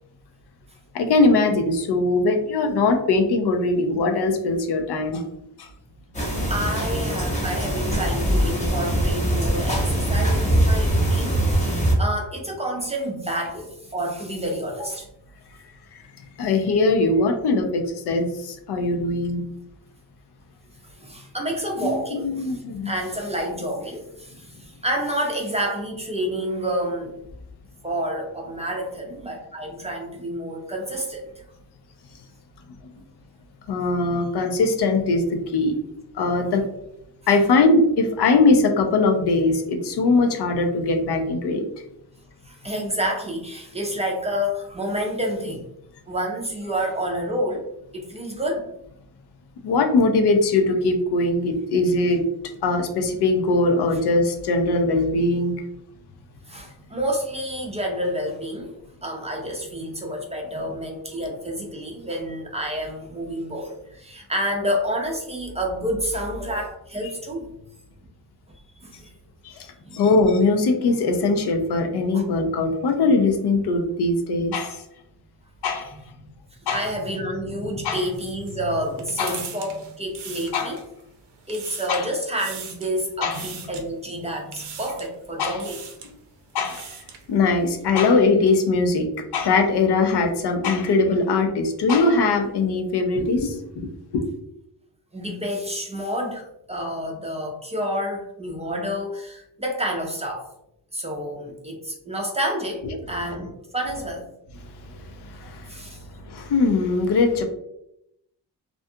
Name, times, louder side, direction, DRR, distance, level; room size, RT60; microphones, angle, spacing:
voice 1, 0.9-5.2 5.6-5.7 16.4-19.4 21.8-22.9 33.7-35.7 36.1-36.6 37.3-41.6 49.6-52.2 52.6-55.6 69.4-69.7 69.9-74.8 75.6-75.9 76.7-76.9 77.8-78.0 79.2-79.4 80.5-80.8 81.9-82.1 83.2-83.4 85.4-85.6 86.5-86.9 87.3-94.2 102.8-102.9 104.6-107.4, left 3 dB, 75° left, 4 dB, 0.5 m, -21 dB
sound 1, 6.1-11.9, right 1 dB, 20° left, 0.7 m, -22 dB
voice 2, 6.2-11.4 11.7-15.1 20.8-22.5 22.8-27.2 27.8-31.3 42.4-45.7 46.1-47.7 47.9-48.7 56.5-58.7 59.0-67.5 68.8-69.1 69.5-69.6 69.9-70.0 72.1-72.2 76.2-76.3 76.7-80.8 81.5-85.8 95.1-100.5 100.9-104.2 105.4-106.0, equal, 15° right, 0 dB, 0.4 m, -29 dB
sound 2, 78.0-81.0 81.3-82.1 82.4-82.9 83.3-83.8 84.5-85.1 85.5-86.1 86.5-87.3, right 6 dB, 85° right, 0.6 m, -39 dB
2.5 x 2.3 x 2.6 m, 0.81 s
wide cardioid pair, 115°, 40 cm